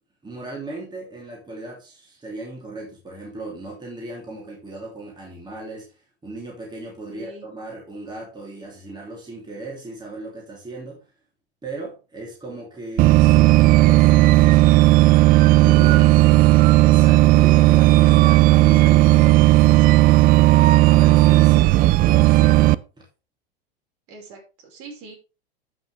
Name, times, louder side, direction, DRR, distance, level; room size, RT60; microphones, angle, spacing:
voice 1, 0.2-11.0 11.6-14.6 15.6-16.4 16.8-19.6 20.8-23.0, right 2 dB, 15° right, -2 dB, 3.2 m, -36 dB
voice 2, 7.1-7.5 15.8-16.3 21.5-21.7 24.1-25.2, right 3 dB, 50° right, 1 dB, 5.3 m, -43 dB
sound 1, 13.0-22.8, right 17 dB, 30° right, 0.4 m, -14 dB
13.0 x 6.2 x 3.5 m, 0.31 s
hypercardioid pair, 100°, 31 cm